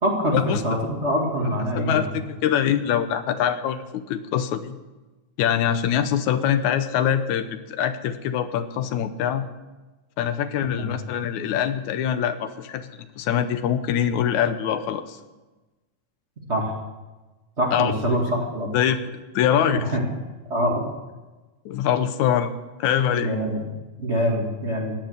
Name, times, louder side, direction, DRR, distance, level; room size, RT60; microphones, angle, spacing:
voice 1, 0.0-2.1 10.7-10.9 16.5-16.7 17.6-18.7 19.7-20.0 20.5-20.8 23.1-23.6 24.0-24.9, equal, 25° right, -1 dB, 2.1 m, -24 dB
voice 2, 1.7-4.8 5.4-9.5 10.2-12.9 13.2-15.2 17.7-17.9 18.7-19.0 19.4-19.9 21.7-22.5 22.8-23.3, left 9 dB, 85° left, 11 dB, 2.2 m, -23 dB
16.0 x 10.5 x 6.6 m, 1.2 s
omnidirectional pair, 3.4 m